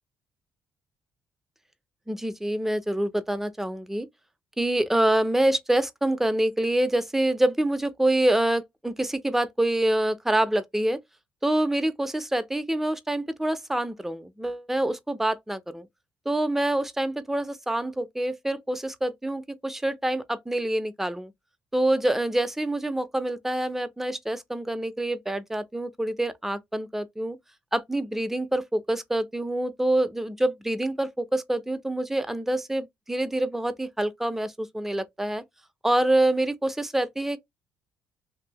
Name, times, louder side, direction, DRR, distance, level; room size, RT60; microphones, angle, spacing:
voice 1, 2.1-4.1 4.6-11.0 11.4-15.9 16.3-21.3 21.7-27.4 27.7-35.4 35.8-37.4, right 1 dB, 5° right, 0.5 m, -26 dB
2.6 x 2.6 x 2.9 m
cardioid pair, 85°, 5 cm